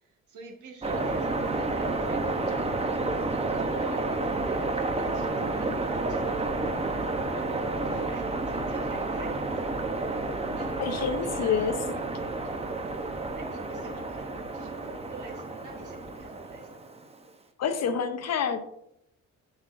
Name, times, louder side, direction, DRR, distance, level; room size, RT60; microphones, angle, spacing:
voice 1, 0.0-7.0 7.3-10.2 10.5-12.7 13.4-16.9, right 3 dB, 80° right, 2 dB, 1.5 m, -46 dB
sound 1, 0.8-17.1, right 2 dB, 20° right, 0.7 m, -30 dB
voice 2, 10.8-11.8 17.6-18.6, left 6 dB, 60° left, 9 dB, 0.8 m, -27 dB
7.2 x 6.2 x 2.5 m, 0.78 s
cardioid pair, 90°, 30 cm